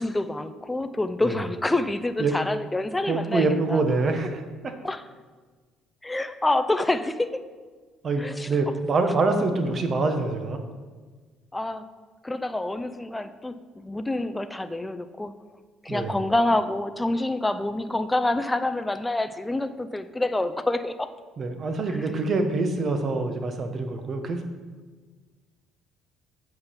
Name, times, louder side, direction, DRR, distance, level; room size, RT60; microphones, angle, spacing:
voice 1, 0.0-3.8 4.8-5.0 6.0-7.3 8.2-8.5 11.5-11.9 12.2-15.3 15.8-21.1 21.9-22.0, left 2 dB, 10° left, 10 dB, 0.5 m, -27 dB
voice 2, 3.1-4.7 8.0-10.6 15.9-16.2 21.4-24.4, right 3 dB, 45° right, 6 dB, 1.1 m, -25 dB
8.0 x 5.1 x 5.7 m, 1.4 s
supercardioid pair, 80°, 0 cm